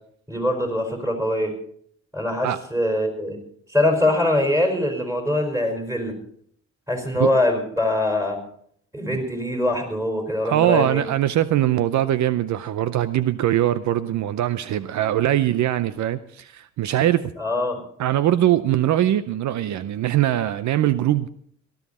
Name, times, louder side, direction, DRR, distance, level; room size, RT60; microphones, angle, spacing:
voice 1, 0.3-1.5 2.1-3.4 3.7-6.1 6.9-8.4 8.9-11.0 17.4-17.8, left 1 dB, 10° right, 5.0 m, -23 dB
voice 2, 10.4-17.3 18.0-21.3, right 12 dB, 70° right, 0.6 m, -21 dB
18.0 x 13.0 x 4.2 m
cardioid pair, 90°, 30 cm